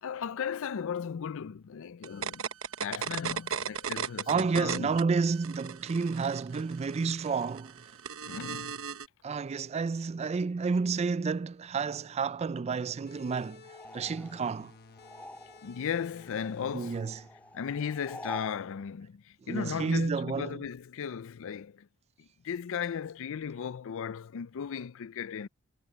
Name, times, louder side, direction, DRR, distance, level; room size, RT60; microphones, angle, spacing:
voice 1, 0.0-2.5 2.8-5.0 8.3-8.7 15.6-17.1 17.5-21.9 22.2-25.5, left 7 dB, 65° left, 0.4 m, -36 dB
sound 1, 2.0-5.0 5.3-9.1, right 7 dB, 70° right, 1.0 m, -36 dB
voice 2, 4.3-7.8 9.2-13.6 13.9-14.7 16.7-17.2 19.5-20.6, right 5 dB, 30° right, 0.3 m, -30 dB
sound 2, 13.1-18.3, left 5 dB, 50° left, 1.1 m, -55 dB
sound 3, 13.6-15.9 16.1-18.6, left 1 dB, 5° left, 3.1 m, -47 dB
head